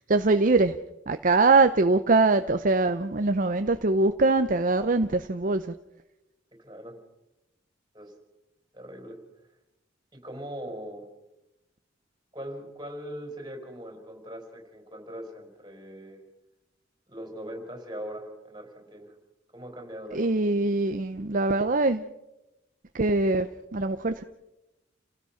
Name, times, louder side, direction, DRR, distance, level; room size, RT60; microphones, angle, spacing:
voice 1, 0.1-0.8 1.1-5.7 20.1-22.1 22.9-24.2, right 3 dB, 45° right, 0.7 m, -23 dB
voice 2, 6.6-6.9 7.9-8.1 8.7-9.2 10.1-11.0 12.3-16.2 17.1-19.1 19.5-20.2, equal, 20° right, 4.6 m, -40 dB
29.5 x 17.0 x 5.8 m
head